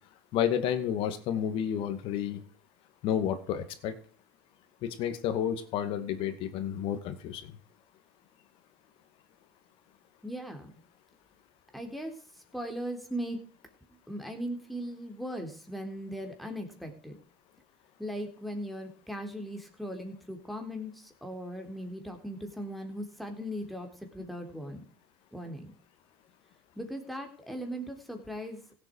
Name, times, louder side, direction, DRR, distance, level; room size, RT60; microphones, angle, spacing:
voice 1, 0.3-2.4 3.0-3.9 4.8-7.4, left 9 dB, 60° left, 10 dB, 2.2 m, -30 dB
voice 2, 10.2-10.7 11.7-12.1 12.5-13.4 14.1-17.2 18.0-24.8 25.3-25.7 26.8-28.6, equal, ahead, 4 dB, 3.6 m, -38 dB
16.5 x 7.8 x 4.8 m, 0.42 s
supercardioid pair, 105°, 10 cm